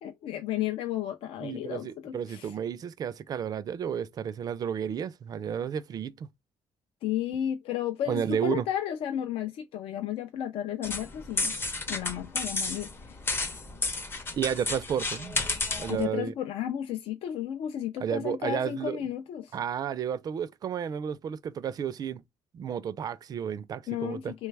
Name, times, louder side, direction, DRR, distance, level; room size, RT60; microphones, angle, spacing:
voice 1, 0.0-2.5 7.0-11.5 11.9-13.2 15.9-19.6 23.9-24.5, left 11 dB, 70° left, 0.4 m, -33 dB
voice 2, 1.4-6.3 8.1-8.6 14.4-15.4 15.8-16.3 18.0-19.0 19.5-22.2 22.5-24.3, right 8 dB, 40° right, 0.3 m, -32 dB
sound 1, 10.8-16.0, left 3 dB, 25° left, 0.6 m, -32 dB
3.2 x 2.2 x 3.2 m
cardioid pair, 120°, 10 cm